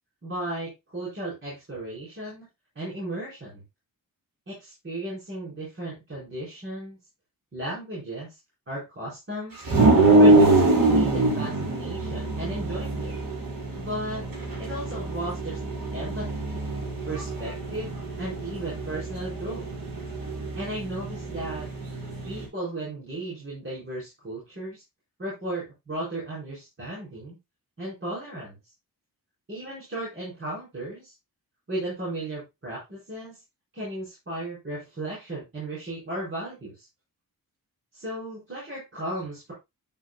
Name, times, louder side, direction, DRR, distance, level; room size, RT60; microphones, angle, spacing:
voice 1, 0.2-2.5 2.7-3.6 4.5-7.0 7.5-8.4 8.7-9.6 10.2-13.1 13.7-14.2 14.6-15.6 15.9-16.6 17.1-19.6 20.5-21.7 22.2-24.8 25.2-27.4 27.8-28.6 29.5-31.1 31.7-33.3 33.7-36.9 37.9-39.5, right 1 dB, 35° right, -8 dB, 4.5 m, -35 dB
sound 1, 9.6-22.5, right 2 dB, 75° right, 4.0 m, -24 dB
8.9 x 7.7 x 2.2 m, 0.22 s
wide cardioid pair, 175°, 35 cm